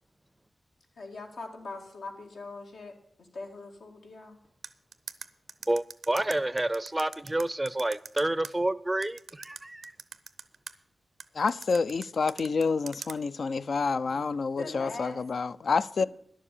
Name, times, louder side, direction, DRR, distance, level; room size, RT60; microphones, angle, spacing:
voice 1, 1.0-4.4 14.0-15.2, left 3 dB, 90° left, 2.1 m, -42 dB
sound 1, 4.6-8.5 9.0-10.7 11.2-13.2, right 5 dB, 85° right, 0.6 m, -42 dB
voice 2, 5.7-9.9, right 1 dB, 20° right, 0.4 m, -29 dB
voice 3, 11.4-16.1, left 4 dB, 70° left, 0.4 m, -28 dB
11.0 x 7.4 x 8.4 m
cardioid pair, 65°, 0 cm